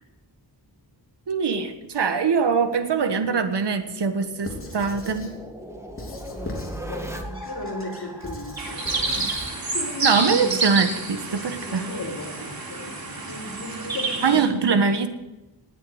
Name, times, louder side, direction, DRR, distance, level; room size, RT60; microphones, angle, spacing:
voice 1, 1.3-5.3 10.0-11.9 14.2-15.1, right 5 dB, 70° right, 8 dB, 1.6 m, -23 dB
sound 1, 3.2-10.0, right 1 dB, 5° right, 2.0 m, -39 dB
Squeak / Writing, 4.4-5.4 6.0-6.9 7.3-9.5, left 1 dB, 30° left, 3.2 m, -38 dB
voice 2, 6.1-9.3 9.7-10.6 11.6-12.9 13.3-14.7, left 1 dB, 45° left, 0 dB, 3.5 m, -36 dB
sound 2, 8.6-14.4, right 3 dB, 55° right, 3.5 m, -29 dB
19.5 x 8.5 x 8.1 m, 1.0 s
wide cardioid pair, 135°, 43 cm